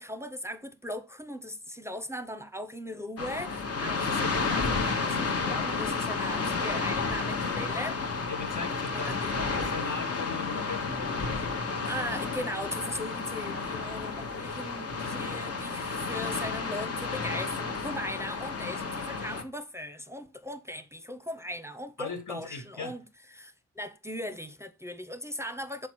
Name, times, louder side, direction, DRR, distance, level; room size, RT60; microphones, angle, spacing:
voice 1, 0.0-8.0 8.9-9.4 9.8-9.9 11.8-25.9, equal, 10° right, 0.7 m, -39 dB
sound 1, 3.2-19.4, left 4 dB, 50° left, 1.1 m, -31 dB
voice 2, 8.3-11.4 22.0-22.9, left 4 dB, 75° left, 2.1 m, -39 dB
5.9 x 4.6 x 4.6 m
cardioid pair, 60°, 31 cm